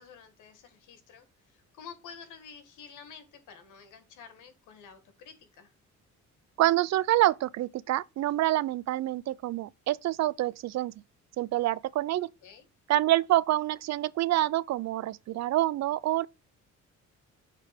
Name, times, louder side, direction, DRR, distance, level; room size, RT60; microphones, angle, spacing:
voice 1, 0.0-5.7 12.4-12.7, left 6 dB, 90° left, 1.4 m, -50 dB
voice 2, 6.6-10.9 11.4-12.3 12.9-16.3, right 15 dB, 60° right, 0.4 m, -27 dB
6.7 x 3.3 x 4.9 m
cardioid pair, 90°, 30 cm